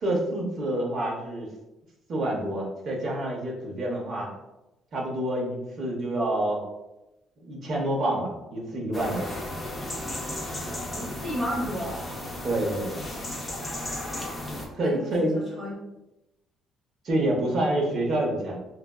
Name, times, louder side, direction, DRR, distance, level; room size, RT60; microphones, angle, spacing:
voice 1, 0.0-1.5 2.1-4.3 4.9-6.6 7.4-9.3 12.4-13.0 14.7-15.4 17.0-18.6, right 1 dB, 40° right, -1 dB, 0.7 m, -27 dB
sound 1, 8.9-14.7, left 1 dB, 10° left, 0.5 m, -34 dB
voice 2, 10.9-12.0 14.8-15.7, equal, 25° right, -6 dB, 1.2 m, -32 dB
4.0 x 2.3 x 2.3 m, 0.97 s
cardioid pair, 180°, 0 cm